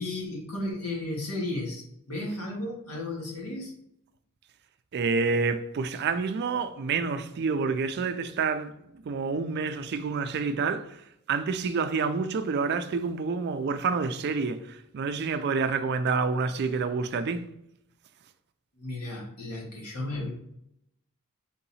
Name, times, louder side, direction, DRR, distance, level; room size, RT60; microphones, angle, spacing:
voice 1, 0.0-3.7 18.8-20.3, left 2 dB, 85° left, 1.5 m, -34 dB
voice 2, 4.9-8.7 9.1-11.0 11.3-17.5, right 4 dB, 50° right, 0.4 m, -28 dB
3.8 x 2.8 x 4.0 m
head